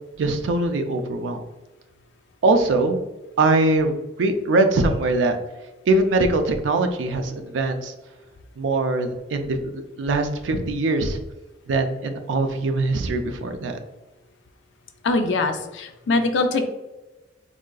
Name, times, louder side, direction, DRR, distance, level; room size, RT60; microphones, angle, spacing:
voice 1, 0.2-1.4 2.4-3.0 3.4-5.4 5.9-7.9 8.6-11.2 11.7-13.8, right 2 dB, 75° right, 6 dB, 0.4 m, -22 dB
voice 2, 15.0-16.7, left 3 dB, 70° left, 7 dB, 0.4 m, -22 dB
3.7 x 2.4 x 2.2 m, 1.1 s
head